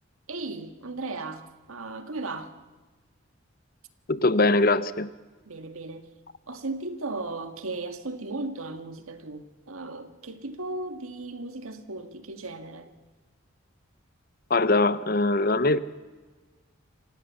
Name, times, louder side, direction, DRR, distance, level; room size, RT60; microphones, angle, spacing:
voice 1, 0.3-2.5 5.5-6.1 6.5-12.9, right 2 dB, 90° right, 8 dB, 1.9 m, -36 dB
voice 2, 4.1-5.1 14.5-15.8, left 2 dB, 45° left, 15 dB, 0.8 m, -22 dB
26.5 x 17.0 x 7.0 m, 1.3 s
head